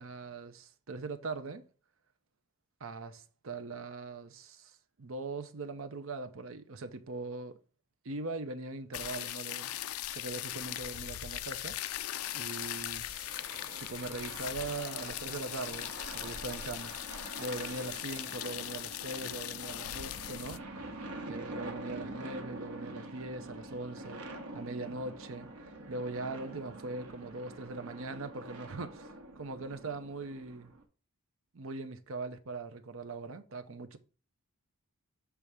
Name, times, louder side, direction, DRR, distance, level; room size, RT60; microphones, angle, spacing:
voice 1, 0.0-1.6 2.8-7.6 8.0-9.7 10.1-11.8 12.3-13.3 13.8-16.9 17.4-20.6 21.3-24.2 24.5-25.5 25.9-30.7 31.5-34.0, right 3 dB, 60° right, 0.7 m, -41 dB
sound 1, 8.9-20.6, left 13 dB, 75° left, 0.4 m, -40 dB
sound 2, 12.6-30.8, right 2 dB, 80° right, 1.2 m, -46 dB
6.9 x 3.4 x 4.8 m
head